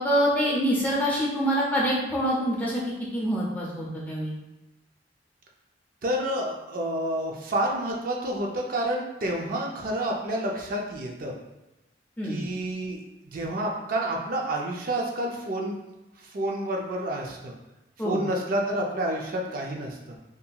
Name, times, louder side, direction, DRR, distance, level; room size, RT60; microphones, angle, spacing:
voice 1, 0.0-2.8 3.1-4.3 12.2-12.4 18.0-18.2, equal, 10° left, -5 dB, 0.5 m, -25 dB
voice 2, 6.0-11.3 12.2-13.0 13.3-15.8 16.2-17.5 18.0-20.2, right 1 dB, 50° right, 0 dB, 0.4 m, -29 dB
2.8 x 2.5 x 2.3 m, 1.0 s
head